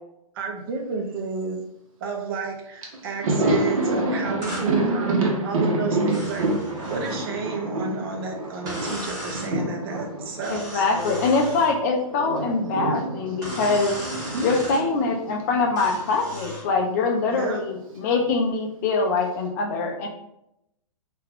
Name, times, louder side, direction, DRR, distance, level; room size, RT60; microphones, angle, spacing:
voice 1, 0.3-1.6 2.0-6.5 6.9-11.3 14.3-14.5 17.3-17.6, right 5 dB, 40° right, 1 dB, 0.6 m, -31 dB
Thunder, 2.4-2.5 2.8-11.6 11.9-16.2 16.5-16.6 17.8-18.5, right 2 dB, 65° right, 0.9 m, -28 dB
sound 1, 4.4-4.7 6.1-7.3 8.7-9.5 10.4-11.7 13.4-14.8 15.8-16.7, equal, 20° right, 1.0 m, -36 dB
voice 2, 10.5-13.9 14.4-20.1, left 4 dB, 25° left, 2 dB, 0.4 m, -23 dB
2.4 x 2.2 x 3.4 m, 0.80 s
hypercardioid pair, 150°, 19 cm